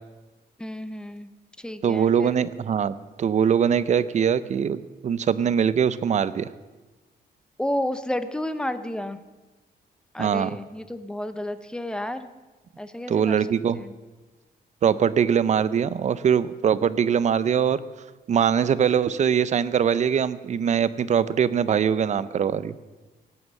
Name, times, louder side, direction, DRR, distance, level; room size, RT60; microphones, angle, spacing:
voice 1, 0.6-1.3 1.6-2.4 7.6-9.2 10.1-12.3 12.8-13.4 13.7-13.9, left 1 dB, 5° left, 11 dB, 0.8 m, -31 dB
voice 2, 1.8-6.5 10.2-10.6 13.1-13.8 14.8-17.8 18.3-22.7, right 8 dB, 45° right, 16 dB, 0.6 m, -22 dB
18.0 x 9.7 x 7.4 m, 1.2 s
cardioid pair, 155°, 17 cm